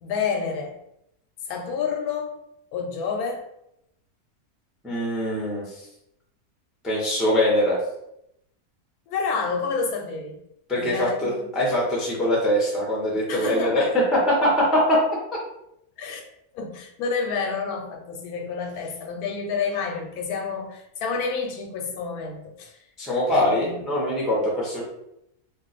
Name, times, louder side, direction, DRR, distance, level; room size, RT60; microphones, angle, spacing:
voice 1, 0.0-0.8 1.5-2.3 2.7-3.4 9.1-10.4 10.8-11.5 13.3-13.9 16.0-16.3 16.5-22.7 23.3-23.8, left 5 dB, 85° left, 3 dB, 1.1 m, -29 dB
voice 2, 4.8-5.8 6.8-7.8 10.7-15.0 23.0-24.8, equal, ahead, -4 dB, 0.5 m, -22 dB
2.5 x 2.3 x 3.9 m, 0.80 s
omnidirectional pair, 1.6 m